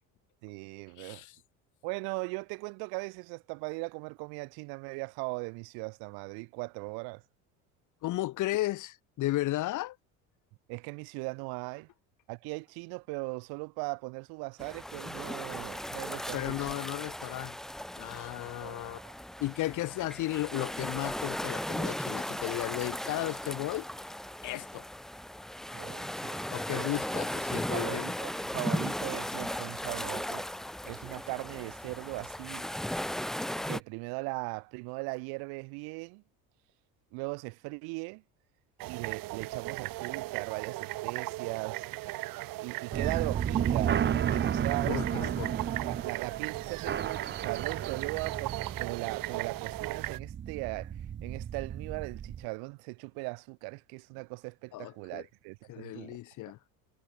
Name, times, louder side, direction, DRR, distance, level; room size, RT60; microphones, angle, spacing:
voice 1, 0.4-1.2 1.8-7.2 10.7-11.9 12.3-16.8 18.6-19.1 25.7-26.9 27.7-30.5 30.8-32.6 33.7-36.2 37.1-38.2 38.9-41.9 42.6-45.3 45.9-50.9 51.2-56.2, right 32 dB, 80° right, 1.1 m, -39 dB
voice 2, 1.0-1.3 8.0-10.0 16.3-17.6 18.0-19.0 19.4-23.9 24.4-24.8 26.5-28.1 44.9-45.5 54.7-55.2 55.7-56.6, left 16 dB, 55° left, 1.3 m, -34 dB
sound 1, 14.6-33.8, left 1 dB, ahead, 0.3 m, -37 dB
sound 2, 38.8-50.2, right 18 dB, 65° right, 2.9 m, -37 dB
sound 3, 42.9-52.4, right 9 dB, 30° right, 1.2 m, -33 dB
cardioid pair, 125°, 37 cm